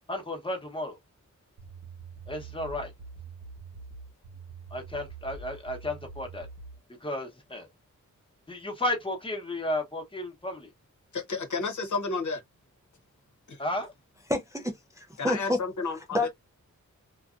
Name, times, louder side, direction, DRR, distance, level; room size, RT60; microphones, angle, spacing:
voice 1, 0.1-1.0 2.3-2.9 4.7-6.5 7.0-7.7 8.5-10.7 13.6-13.9, left 1 dB, 15° left, 0.9 m, -33 dB
sound 1, 1.6-6.8, right 4 dB, 60° right, 1.0 m, -45 dB
voice 2, 11.1-12.4 13.5-13.6 15.2-16.3, left 4 dB, 65° left, 0.9 m, -31 dB
voice 3, 14.3-15.6 16.1-16.3, left 1 dB, 10° right, 0.4 m, -28 dB
2.6 x 2.3 x 2.4 m
wide cardioid pair, 110°, 32 cm